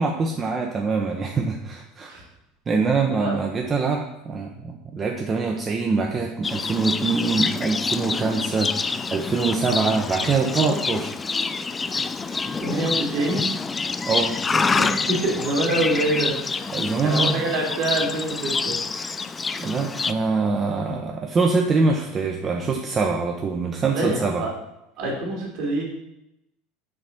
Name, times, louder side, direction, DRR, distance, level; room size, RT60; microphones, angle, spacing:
voice 1, 0.0-2.2 2.7-8.7 9.1-11.3 12.2-12.5 14.1-14.3 16.7-17.4 18.9-19.1 19.6-24.5, right 4 dB, 30° right, 2 dB, 0.7 m, -24 dB
Livestock farm animals working animals, 6.4-20.1, left 4 dB, 20° left, 0.3 m, -27 dB
voice 2, 12.6-13.5 14.8-16.7 17.0-18.8 23.9-24.5 25.0-25.8, right 2 dB, 55° right, -2 dB, 2.4 m, -26 dB
6.5 x 4.1 x 4.5 m, 0.86 s
figure-of-eight pair, 70°, 0 cm